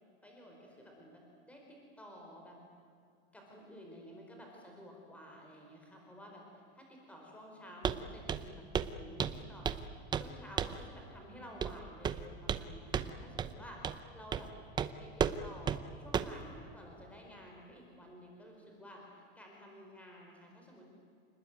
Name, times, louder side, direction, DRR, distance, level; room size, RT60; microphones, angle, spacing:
voice 1, 0.2-2.6 3.3-8.6 8.9-9.7 10.2-14.5 15.0-20.9, equal, 5° left, 0 dB, 4.5 m, -52 dB
Walk footsteps, 7.8-8.0 8.3-8.5 8.7-8.9 9.2-9.8 10.1-10.3 10.6-10.8 11.6-11.8 12.0-12.7 12.9-13.1 13.4-13.5 13.8-14.0 14.3-14.5 14.8-14.9 15.2-15.4 15.7-15.8 16.1-16.4, right 7 dB, 15° right, 0.7 m, -33 dB
29.5 x 20.0 x 9.4 m, 2.4 s
supercardioid pair, 170°, 30 cm